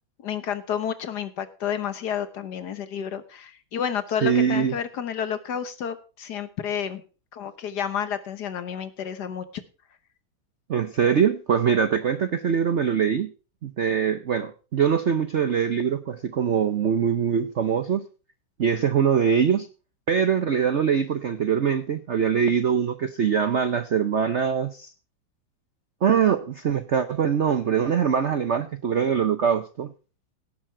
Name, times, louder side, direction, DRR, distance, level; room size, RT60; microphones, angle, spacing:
voice 1, 0.2-7.0 7.3-9.4, left 8 dB, 60° left, 12 dB, 1.4 m, -30 dB
voice 2, 4.2-4.7 10.7-13.3 13.6-18.0 18.6-19.7 20.1-24.9 26.0-29.9, right 7 dB, 60° right, 10 dB, 0.7 m, -23 dB
17.0 x 7.7 x 4.4 m, 0.35 s
omnidirectional pair, 2.2 m